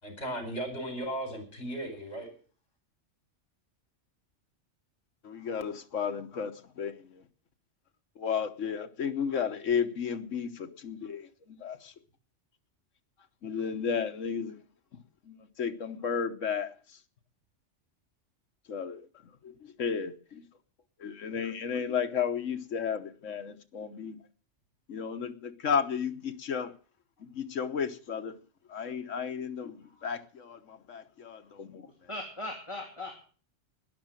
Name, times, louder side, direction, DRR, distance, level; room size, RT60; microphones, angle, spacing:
voice 1, 0.0-2.3, right 1 dB, 65° left, 5.3 m, -36 dB
voice 2, 5.2-7.2 8.2-11.9 13.4-14.6 15.2-17.0 18.7-19.1 19.4-20.4 21.0-24.2 24.9-26.7 27.2-28.4 28.7-31.9, left 7 dB, 85° left, 1.5 m, -33 dB
voice 3, 29.8-30.2 31.3-31.5 31.9-33.2, left 2 dB, 25° left, 2.9 m, -41 dB
13.0 x 11.0 x 9.0 m
omnidirectional pair, 1.3 m